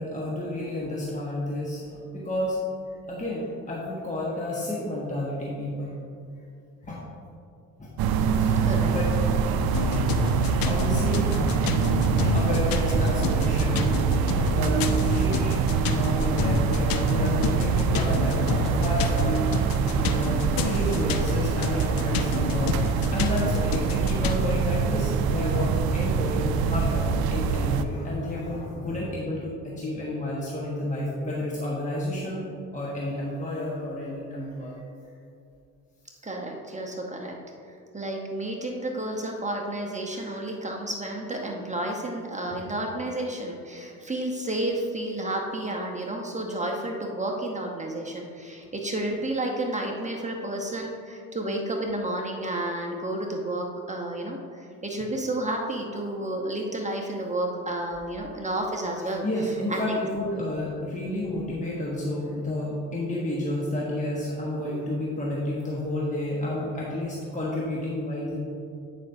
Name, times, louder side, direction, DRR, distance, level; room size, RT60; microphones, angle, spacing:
voice 1, 0.0-2.6 3.0-6.0 6.8-7.0 7.8-7.9 8.3-9.1 9.9-13.9 14.3-19.4 19.9-22.8 23.1-34.8 40.1-40.4 44.0-44.1 59.2-68.4, left 1 dB, 20° left, -5 dB, 1.3 m, -31 dB
sound 1, 8.0-27.8, right 5 dB, 65° right, 0.5 m, -24 dB
sound 2, 9.7-24.4, left 7 dB, 60° left, 0.6 m, -31 dB
voice 2, 36.2-37.4 37.9-59.2 59.7-59.8, right 1 dB, 20° right, 0 dB, 1.0 m, -31 dB
9.5 x 5.3 x 2.7 m, 2.5 s
supercardioid pair, 60°, 39 cm